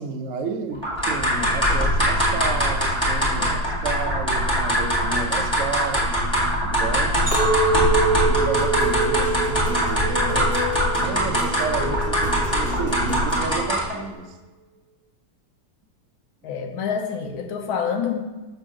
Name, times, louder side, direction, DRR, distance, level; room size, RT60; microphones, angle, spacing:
voice 1, 0.0-6.1 6.6-7.3 7.9-8.0 8.3-10.6 11.0-14.4, right 4 dB, 75° right, 4 dB, 0.7 m, -31 dB
sound 1, 0.8-14.0, equal, 5° left, 1.8 m, -22 dB
Chink clink, 7.3-11.6 12.1-12.5, right 3 dB, 20° right, 1.4 m, -25 dB
sound 2, 8.4-13.5, left 2 dB, 30° left, 1.6 m, -31 dB
voice 2, 16.4-18.2, left 7 dB, 75° left, 4 dB, 1.7 m, -27 dB
6.6 x 3.5 x 5.9 m, 1.2 s
omnidirectional pair, 2.3 m